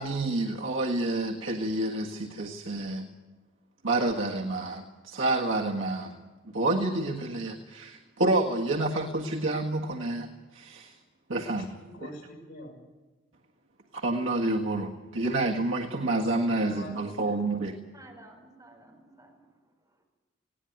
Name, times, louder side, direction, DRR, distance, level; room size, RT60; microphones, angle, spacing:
voice 1, 0.0-3.1 3.8-6.2 6.5-10.9 11.3-11.7 13.9-17.8, right 2 dB, 90° right, -1 dB, 1.7 m, -29 dB
voice 2, 11.5-12.8 16.1-17.0, left 2 dB, 70° left, 0 dB, 6.2 m, -43 dB
voice 3, 17.9-20.0, right 2 dB, 20° right, 1 dB, 4.7 m, -54 dB
19.5 x 18.0 x 9.3 m, 1.2 s
head